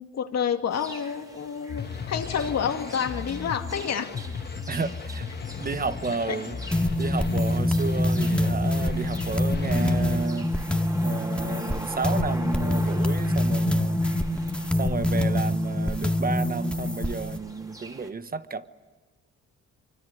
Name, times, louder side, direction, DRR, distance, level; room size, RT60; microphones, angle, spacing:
voice 1, 0.0-4.1 6.3-6.4, left 7 dB, 60° left, 2.3 m, -29 dB
sound 1, 0.7-18.1, right 1 dB, 10° right, 3.1 m, -43 dB
sound 2, 1.7-10.3, left 5 dB, 35° left, 1.2 m, -36 dB
voice 2, 4.7-5.3 5.6-6.6 7.0-14.0 14.7-18.7, right 4 dB, 30° right, 1.2 m, -32 dB
sound 3, 6.7-17.4, left 1 dB, 5° left, 1.9 m, -25 dB
24.5 x 24.5 x 9.4 m
cardioid pair, 90°, 30 cm